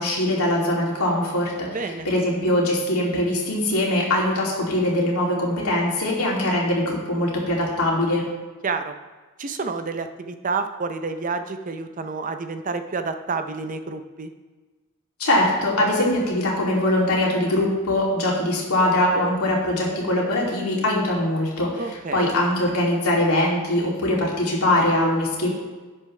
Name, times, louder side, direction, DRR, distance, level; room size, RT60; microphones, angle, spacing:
voice 1, 0.0-1.7 2.0-8.2 15.2-25.5, left 1 dB, 80° left, -3 dB, 2.8 m, -22 dB
voice 2, 1.7-2.1 8.6-8.9 9.4-14.3 21.8-22.3, right 4 dB, 35° right, 8 dB, 0.5 m, -29 dB
11.0 x 8.1 x 3.3 m, 1.3 s
head